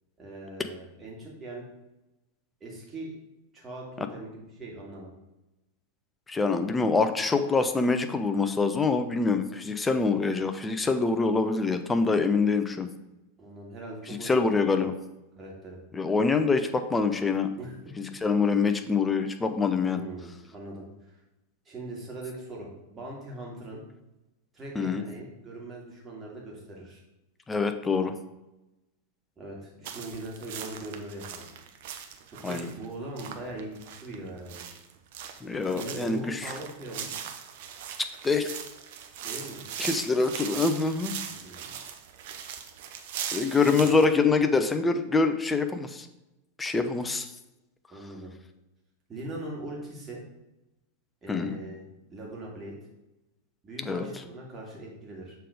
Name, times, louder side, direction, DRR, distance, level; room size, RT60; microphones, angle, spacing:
voice 1, 0.2-1.6 2.6-3.2 3.5-5.1 13.4-14.8 15.4-15.8 17.5-17.7 19.9-20.8 21.7-23.8 24.5-27.0 29.4-31.5 32.3-34.6 35.6-37.1 39.2-39.6 41.3-41.8 43.6-43.9 47.9-48.3 49.1-50.2 51.2-51.8 52.1-52.8 53.6-55.3, right 1 dB, 20° right, -3 dB, 2.2 m, -41 dB
voice 2, 6.3-12.9 14.2-14.9 15.9-17.5 18.0-20.0 24.8-25.0 27.5-28.1 32.4-32.7 35.4-36.5 38.2-38.5 39.8-41.1 43.3-46.1 46.6-47.3 51.3-51.6 53.9-54.1, left 4 dB, 10° left, 7 dB, 0.5 m, -25 dB
sound 1, 29.8-44.1, right 8 dB, 50° right, 0.7 m, -39 dB
6.6 x 3.8 x 4.9 m, 0.96 s
figure-of-eight pair, 90°, 0 cm